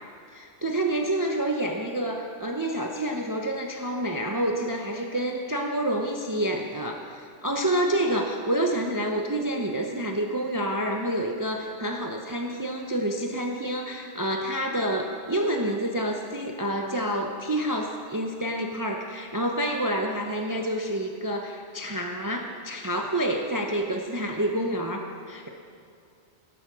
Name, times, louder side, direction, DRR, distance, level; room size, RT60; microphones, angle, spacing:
voice 1, 0.3-25.5, right 1 dB, 20° right, 2 dB, 0.7 m, -28 dB
18.0 x 8.4 x 6.2 m, 2.5 s
omnidirectional pair, 1.2 m